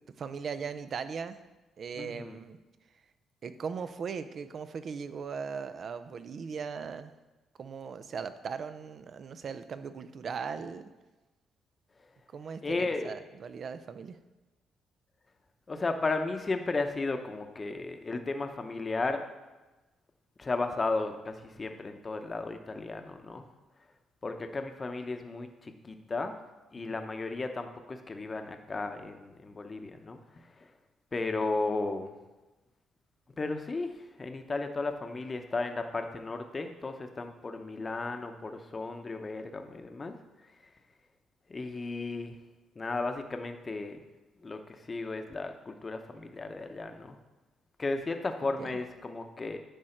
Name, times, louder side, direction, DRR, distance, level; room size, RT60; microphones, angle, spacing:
voice 1, 0.0-1.4 1.8-2.6 3.4-7.1 7.6-10.9 12.3-14.2 48.4-48.8, right 6 dB, 55° right, 11 dB, 0.5 m, -39 dB
voice 2, 2.0-2.4 12.6-13.2 15.7-19.2 20.4-23.4 24.2-26.4 26.7-30.7 31.1-32.1 33.4-40.1 41.5-42.4 42.8-44.0 44.4-47.2 47.8-49.6, left 3 dB, 30° left, 6 dB, 0.8 m, -34 dB
10.5 x 4.8 x 4.4 m, 1.1 s
cardioid pair, 90°, 0 cm